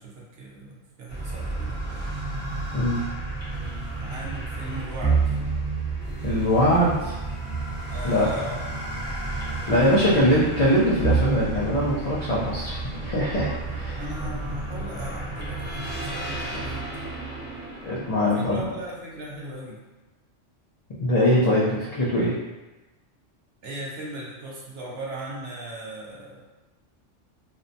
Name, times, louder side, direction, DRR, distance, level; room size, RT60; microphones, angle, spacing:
voice 1, 0.0-2.1 3.5-5.4 7.9-8.6 9.9-10.2 13.9-16.8 18.3-19.8 23.6-26.5, right 1 dB, 65° right, -4 dB, 0.7 m, -38 dB
sound 1, 1.1-19.0, right 3 dB, 15° right, 0.4 m, -30 dB
voice 2, 6.2-7.1 8.0-8.3 9.7-14.0 17.8-18.7 21.0-22.3, equal, 70° left, -8 dB, 0.3 m, -22 dB
2.7 x 2.1 x 2.6 m, 1.1 s
omnidirectional pair, 1.3 m